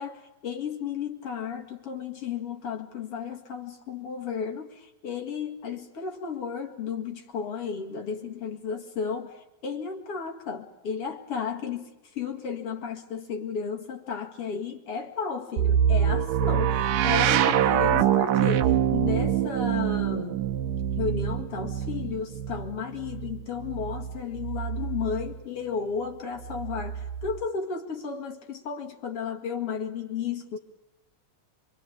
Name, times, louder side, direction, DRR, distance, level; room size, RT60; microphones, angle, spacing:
voice 1, 0.0-20.4 21.0-30.6, left 6 dB, 45° left, 3 dB, 2.6 m, -33 dB
sound 1, 15.6-25.4 26.4-27.4, right 9 dB, 75° right, 2.6 m, -25 dB
27.0 x 23.5 x 8.6 m, 0.93 s
omnidirectional pair, 4.0 m